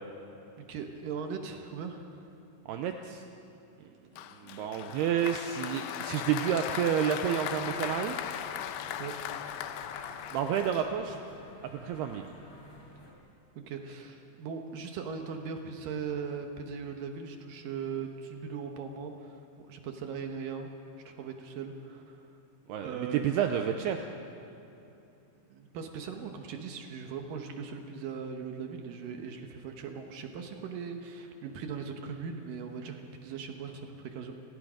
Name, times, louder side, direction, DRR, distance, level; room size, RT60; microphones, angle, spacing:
voice 1, 0.6-2.3 9.0-9.2 13.6-20.7 21.1-22.3 22.8-23.2 25.5-34.3, right 6 dB, 70° right, 4 dB, 2.1 m, -39 dB
voice 2, 2.7-3.2 3.8-3.9 4.4-8.2 10.3-11.2 11.7-12.3 22.7-24.1, right 8 dB, 90° right, 5 dB, 2.3 m, -30 dB
Applause, 4.2-11.3, left 10 dB, 75° left, 2.7 m, -38 dB
sound 1, 7.3-13.1, left 1 dB, 35° left, 3.9 m, -51 dB
29.5 x 18.0 x 5.1 m, 2.9 s
omnidirectional pair, 5.5 m